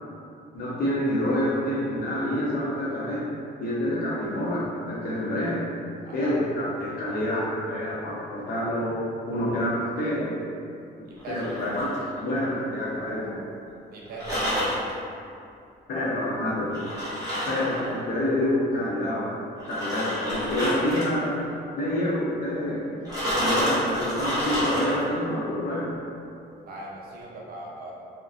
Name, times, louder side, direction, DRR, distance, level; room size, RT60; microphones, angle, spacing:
voice 1, 0.5-3.3 3.6-5.7 6.1-10.3 11.3-13.4 15.9-16.9 17.5-19.4 19.6-21.4 21.8-23.1 23.4-26.0, left 1 dB, 60° left, -6 dB, 0.6 m, -27 dB
voice 2, 6.0-6.4 11.0-11.5 13.9-14.7 26.6-27.9, right 2 dB, 60° right, -4 dB, 0.5 m, -39 dB
sound 1, 11.2-12.6 14.1-14.9 16.7-18.0 19.6-21.2 23.1-25.2, equal, 20° right, 0.7 m, -28 dB
2.4 x 2.1 x 2.4 m, 2.5 s
cardioid pair, 165°, 18 cm